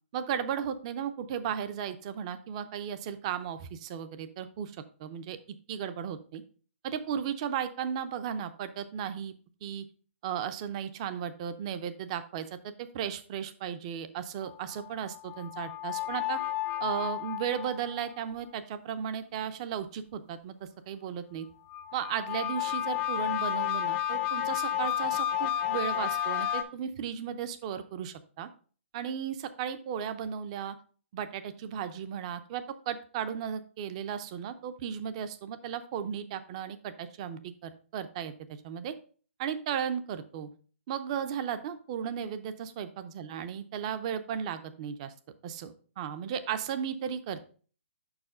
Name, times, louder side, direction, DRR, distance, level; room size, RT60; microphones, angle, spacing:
voice 1, 0.1-5.4 5.7-6.4 6.8-9.3 9.6-9.9 10.2-16.4 16.8-20.5 20.9-21.5 21.9-28.5 28.9-30.8 31.1-38.3 38.6-38.9 39.4-40.5 40.9-45.1 45.4-47.5, right 8 dB, 30° right, 12 dB, 0.5 m, -35 dB
sound 1, 14.4-18.0 21.7-26.6, left 12 dB, 20° left, 0.5 m, -32 dB
5.7 x 4.8 x 4.8 m, 0.41 s
hypercardioid pair, 160°, 7 cm